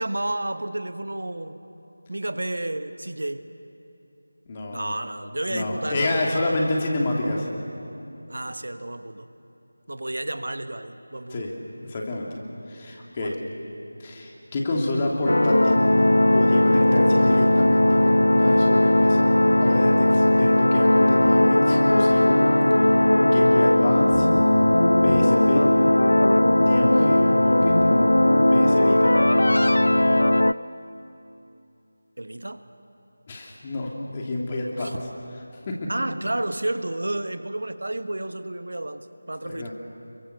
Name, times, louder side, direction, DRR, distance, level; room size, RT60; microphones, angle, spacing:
voice 1, 0.0-1.6 2.1-3.4 4.7-6.3 8.3-9.3 9.9-11.5 13.2-13.4 32.2-32.7 34.8-35.0 35.9-39.7, right 1 dB, 70° right, 10 dB, 1.3 m, -31 dB
voice 2, 4.5-4.9 5.5-7.5 11.3-11.5 11.9-12.4 12.7-13.4 14.0-15.8 16.3-19.3 19.6-22.4 22.7-24.3 25.0-25.7 26.6-27.7 28.5-29.1 33.3-35.0 35.7-35.9 39.4-39.7, left 2 dB, 25° left, -1 dB, 2.9 m, -28 dB
sound 1, 15.3-30.5, left 1 dB, 75° left, 0.6 m, -18 dB
28.5 x 23.0 x 7.0 m, 2.8 s
figure-of-eight pair, 165°, 0 cm